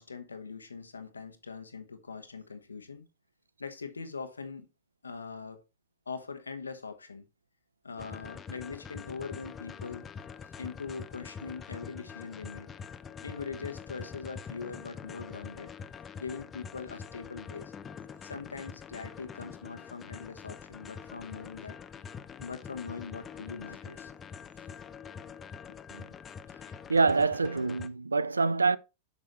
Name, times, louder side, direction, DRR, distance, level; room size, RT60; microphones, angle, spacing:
voice 1, 0.0-3.0 3.6-4.7 5.0-5.6 6.1-7.3 7.8-10.1 10.6-12.7 13.2-15.8 16.2-17.7 18.2-21.8 22.4-24.1 25.7-25.8, left 5 dB, 75° left, 1.0 m, -42 dB
sound 1, 8.0-27.9, left 6 dB, 20° left, 0.6 m, -45 dB
voice 2, 26.9-28.8, right 4 dB, 75° right, 0.4 m, -25 dB
8.3 x 6.2 x 3.1 m
figure-of-eight pair, 90°, 0 cm